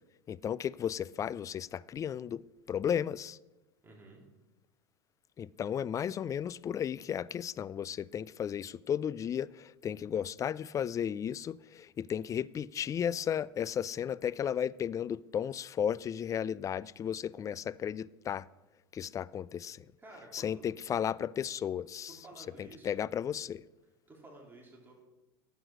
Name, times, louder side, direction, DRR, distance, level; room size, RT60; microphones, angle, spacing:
voice 1, 0.3-2.4 2.7-3.4 5.4-18.5 18.9-19.9 20.3-22.2 22.6-23.6, left 8 dB, 25° left, 0.4 m, -34 dB
voice 2, 3.8-4.2 20.0-20.7 22.1-22.9 24.1-25.0, right 2 dB, 15° right, 3.8 m, -52 dB
11.5 x 8.2 x 6.4 m
hypercardioid pair, 95°, 13 cm